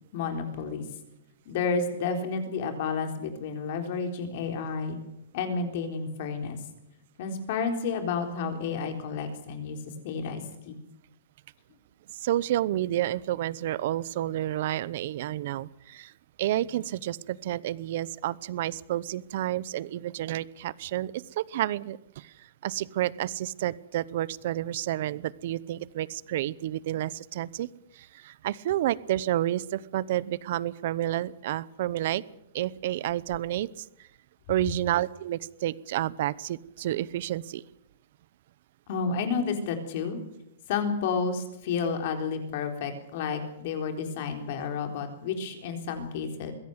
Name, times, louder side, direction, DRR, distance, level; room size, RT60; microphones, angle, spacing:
voice 1, 0.1-0.8 1.5-5.0 5.3-6.6 7.2-9.8 10.0-10.8 38.9-40.2 40.7-46.5, left 5 dB, 45° left, 5 dB, 3.9 m, -31 dB
voice 2, 12.1-16.1 16.4-22.3 22.6-27.7 28.0-32.2 32.5-33.8 34.5-37.6, right 13 dB, 50° right, 20 dB, 0.8 m, -30 dB
22.5 x 16.5 x 8.1 m, 0.85 s
hypercardioid pair, 170°, 0 cm